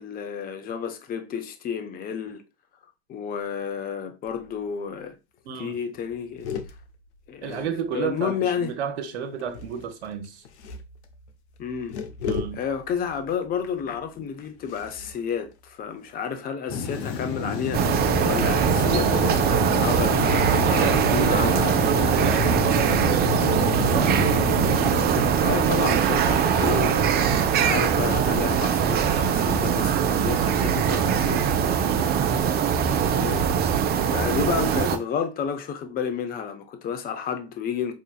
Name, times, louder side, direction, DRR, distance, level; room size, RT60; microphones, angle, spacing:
voice 1, 0.0-2.4 3.1-5.2 5.6-6.5 7.3-8.7 11.6-12.0 12.5-21.7 25.4-31.5 33.0-33.5 34.1-37.9, left 7 dB, 25° left, 0.6 m, -31 dB
sound 1, 4.2-4.7 5.0-5.1 5.4-5.6 5.9-8.3 9.4-16.3, left 6 dB, 85° left, 0.6 m, -38 dB
voice 2, 5.5-5.8 7.4-10.4 12.3-12.6 20.6-24.2 31.8-32.3, right 7 dB, 85° right, 0.7 m, -32 dB
sound 2, 16.7-25.3, left 4 dB, 65° left, 0.9 m, -29 dB
sound 3, 17.7-35.0, right 7 dB, 30° right, 0.4 m, -22 dB
4.8 x 2.7 x 2.3 m
hypercardioid pair, 100°, 33 cm